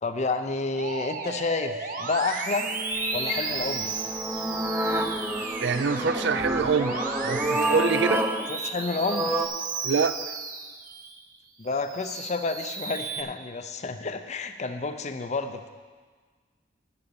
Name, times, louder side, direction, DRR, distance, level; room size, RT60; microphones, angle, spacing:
voice 1, 0.0-2.7 3.1-4.0 8.5-9.5 11.6-15.7, left 3 dB, 40° left, 8 dB, 0.5 m, -30 dB
Musical instrument, 0.8-11.2 11.7-13.2, right 4 dB, 45° right, 0.8 m, -34 dB
sound 1, 2.6-9.5, right 1 dB, 10° right, 0.7 m, -29 dB
sound 2, 2.9-8.1, left 2 dB, 75° left, 2.8 m, -41 dB
voice 2, 5.6-8.3 9.8-10.2, right 5 dB, 65° right, 12 dB, 0.5 m, -25 dB
9.5 x 6.8 x 7.0 m, 1.5 s
head